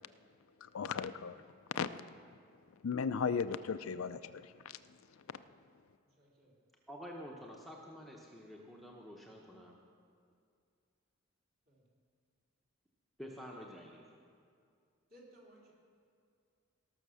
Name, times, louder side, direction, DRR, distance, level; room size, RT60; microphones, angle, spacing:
voice 1, 0.6-1.4 1.7-2.0 2.8-4.8 5.1-5.4, left 6 dB, 80° left, 12 dB, 0.4 m, -37 dB
voice 2, 6.2-6.6 11.7-11.9 15.1-15.7, right 1 dB, 45° right, -4 dB, 3.1 m, -60 dB
voice 3, 6.9-9.8 13.2-14.0, equal, ahead, -2 dB, 0.8 m, -49 dB
18.0 x 6.4 x 6.3 m, 2.3 s
head